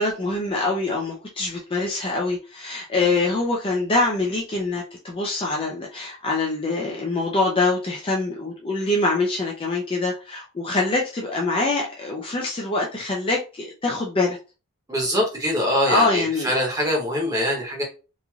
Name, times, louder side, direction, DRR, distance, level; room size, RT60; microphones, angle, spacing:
voice 1, 0.0-14.4 15.9-16.5, left 2 dB, 25° left, -2 dB, 0.4 m, -24 dB
voice 2, 14.9-17.8, equal, 15° right, -2 dB, 0.9 m, -23 dB
3.0 x 2.5 x 2.3 m, 0.33 s
head